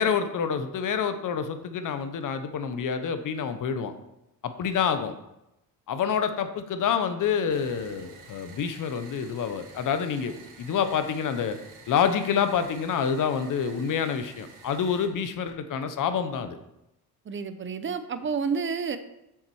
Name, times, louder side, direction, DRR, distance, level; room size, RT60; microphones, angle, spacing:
voice 1, 0.0-3.9 4.4-5.1 5.9-11.6 11.9-16.6, left 7 dB, 55° left, 9 dB, 1.0 m, -27 dB
sound 1, 7.5-15.1, right 4 dB, 50° right, 1.7 m, -50 dB
voice 2, 17.3-19.0, right 5 dB, 30° right, 11 dB, 0.7 m, -29 dB
7.4 x 7.2 x 4.7 m, 0.88 s
cardioid pair, 125°, 39 cm